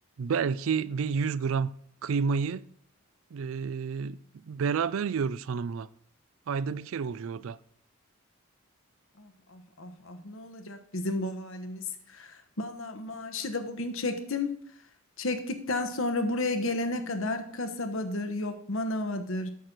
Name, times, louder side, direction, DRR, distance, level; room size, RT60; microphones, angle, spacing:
voice 1, 0.2-1.7 2.0-2.7 3.3-5.9 6.5-7.6, right 5 dB, 65° right, 0.4 m, -30 dB
voice 2, 9.2-14.5 15.2-19.5, left 2 dB, 65° left, 1.1 m, -32 dB
8.4 x 6.6 x 6.0 m
head